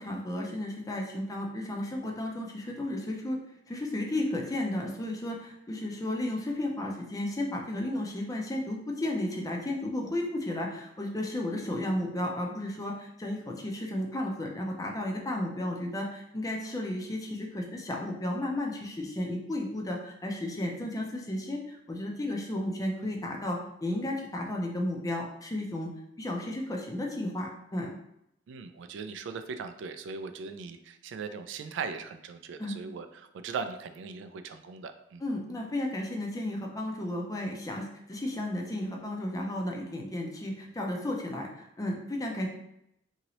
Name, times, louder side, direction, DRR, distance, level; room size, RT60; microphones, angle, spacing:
voice 1, 0.0-3.4 3.7-25.9 26.2-27.9 32.6-32.8 35.2-42.5, left 1 dB, 20° left, 1 dB, 0.5 m, -33 dB
voice 2, 28.5-35.2, right 5 dB, 70° right, 9 dB, 0.3 m, -39 dB
2.9 x 2.7 x 2.9 m, 0.80 s
head